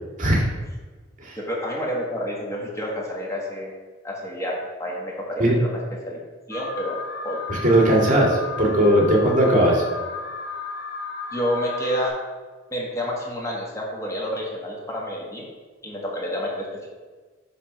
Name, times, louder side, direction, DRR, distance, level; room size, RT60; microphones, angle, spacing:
voice 1, 1.4-3.8 4.0-6.2 6.5-7.4 11.3-12.2 12.7-15.5 15.8-16.9, equal, 15° left, -3 dB, 1.4 m, -29 dB
Alarm, 6.5-12.1, left 4 dB, 80° left, 1.5 m, -33 dB
voice 2, 7.5-9.8, right 1 dB, 45° right, -2 dB, 2.1 m, -18 dB
9.3 x 3.5 x 5.8 m, 1.4 s
head